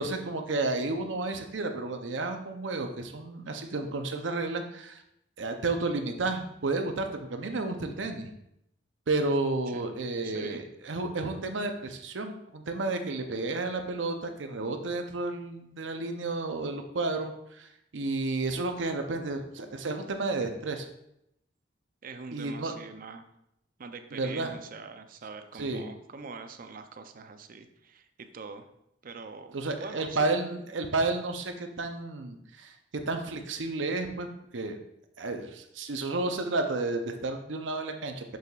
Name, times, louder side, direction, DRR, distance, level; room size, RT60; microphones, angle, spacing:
voice 1, 0.0-5.0 5.4-8.3 9.1-20.9 22.3-22.7 24.1-24.5 25.6-25.8 29.5-32.7 33.1-34.3 34.5-34.8 35.2-38.4, right 3 dB, 90° right, 5 dB, 0.7 m, -31 dB
voice 2, 10.2-10.6 22.0-23.2 23.8-28.7 29.0-30.4, right 4 dB, 50° right, 8 dB, 0.5 m, -44 dB
6.7 x 6.4 x 2.4 m, 0.80 s
head